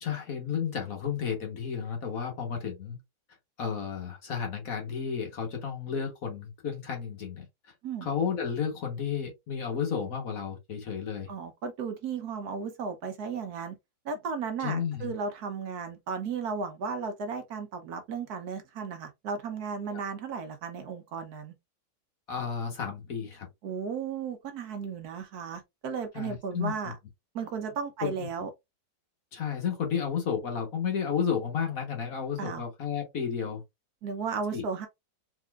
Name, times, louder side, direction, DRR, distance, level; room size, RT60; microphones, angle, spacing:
voice 1, 0.0-3.0 3.6-7.4 8.0-11.3 14.6-15.1 19.9-20.0 22.3-23.5 26.1-26.9 28.0-28.3 29.3-33.6 34.5-34.6, left 7 dB, 55° left, 1.6 m, -32 dB
voice 2, 11.3-13.7 14.0-21.5 23.6-26.9 27.3-28.5 32.4-32.6 34.0-34.9, right 5 dB, 65° right, 1.3 m, -35 dB
4.1 x 3.7 x 2.4 m
omnidirectional pair, 1.9 m